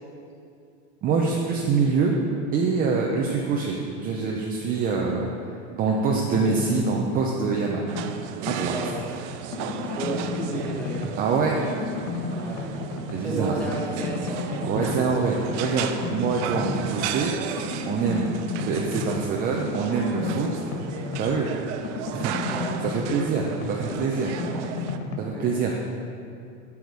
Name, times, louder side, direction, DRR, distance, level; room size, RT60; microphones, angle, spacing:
voice 1, 1.0-2.2 2.5-5.3 5.8-7.9 8.5-8.8 11.2-11.6 13.1-13.6 14.6-17.3 17.9-18.3 18.6-20.5 21.2-21.5 22.1-22.4 22.8-24.3 25.2-25.7, right 5 dB, 25° right, -1 dB, 0.5 m, -25 dB
sound 1, 6.1-7.1 7.4-9.2 9.5-11.3 11.6-13.3 13.6-15.2 15.6-17.2 17.6-21.5 21.8-25.2, left 4 dB, 35° left, 0.8 m, -33 dB
sound 2, 7.9-25.0, right 9 dB, 70° right, 0.6 m, -35 dB
voice 2, 8.6-9.1 9.8-11.0 12.3-12.8 13.2-15.1 22.5-22.7 25.3-25.4, right 1 dB, 5° left, -5 dB, 1.4 m, -33 dB
7.9 x 7.1 x 4.7 m, 2.5 s
supercardioid pair, 155°, 36 cm